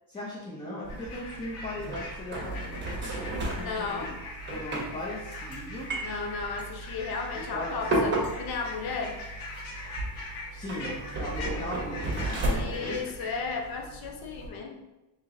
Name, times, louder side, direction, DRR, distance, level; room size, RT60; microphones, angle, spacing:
voice 1, 0.1-4.1 4.5-5.9 7.5-7.7 10.5-12.4 12.8-13.0, left 1 dB, 10° left, -8 dB, 0.6 m, -38 dB
sound 1, 0.8-14.5, right 1 dB, 20° right, 0.9 m, -34 dB
sound 2, 0.9-13.5, left 2 dB, 70° left, 1.0 m, -42 dB
voice 2, 3.6-4.2 6.0-9.2 12.5-14.8, left 4 dB, 50° left, 2 dB, 0.7 m, -34 dB
3.0 x 3.0 x 3.7 m, 1.0 s
cardioid pair, 150°, 49 cm